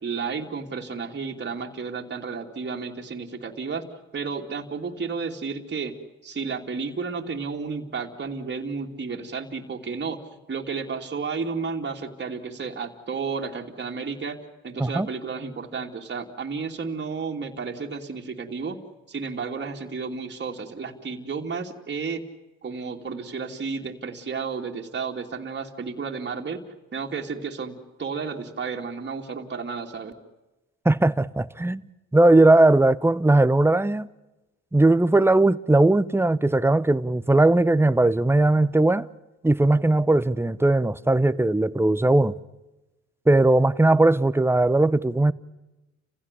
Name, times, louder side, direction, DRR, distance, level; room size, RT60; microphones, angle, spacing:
voice 1, 0.0-3.9 4.1-5.9 6.2-10.2 10.5-14.4 14.6-18.8 19.1-22.2 22.6-26.6 26.9-30.1, right 5 dB, 35° right, 2.8 m, -32 dB
voice 2, 30.8-31.8 32.1-34.1 34.7-39.1 39.4-42.3 43.3-45.3, right 2 dB, 10° right, 0.8 m, -19 dB
29.5 x 16.5 x 9.8 m
cardioid pair, 90°, 30 cm